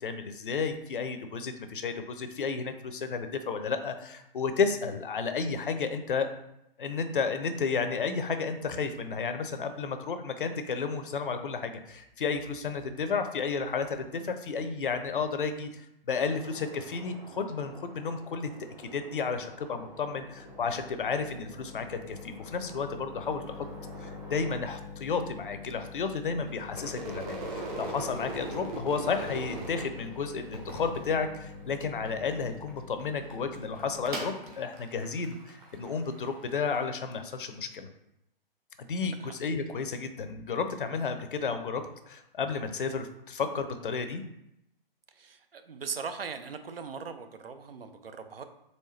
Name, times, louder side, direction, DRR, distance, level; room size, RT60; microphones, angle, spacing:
voice 1, 0.0-6.3 6.8-18.5 18.8-23.7 24.0-37.9 38.8-44.2, left 5 dB, 60° left, 8 dB, 0.5 m, -32 dB
sound 1, 16.1-24.5, right 1 dB, 10° right, 0.7 m, -50 dB
sound 2, 19.1-36.7, left 3 dB, 55° right, 1.2 m, -46 dB
Crowd / Fireworks, 26.7-32.1 32.4-33.0 33.3-36.8, right 2 dB, 35° right, 1.1 m, -40 dB
voice 2, 45.2-48.4, right 5 dB, 75° right, 8 dB, 0.6 m, -39 dB
4.2 x 3.1 x 3.1 m, 0.84 s
figure-of-eight pair, 125°, 30 cm